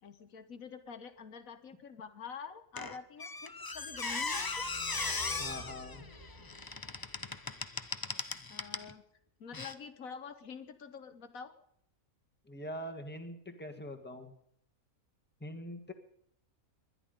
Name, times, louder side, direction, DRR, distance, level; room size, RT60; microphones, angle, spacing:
voice 1, 0.0-4.7 8.5-9.0 9.4-11.6, left 6 dB, 75° left, 10 dB, 1.5 m, -47 dB
Squeak, 2.8-8.9 9.5-9.7, left 3 dB, 25° left, 0.5 m, -38 dB
sound 1, 3.7-8.2, left 1 dB, 35° right, 4.8 m, -52 dB
voice 2, 5.4-6.0 12.5-14.3 15.4-15.9, equal, 5° left, 4 dB, 1.6 m, -43 dB
21.0 x 11.0 x 5.3 m, 0.70 s
omnidirectional pair, 1.5 m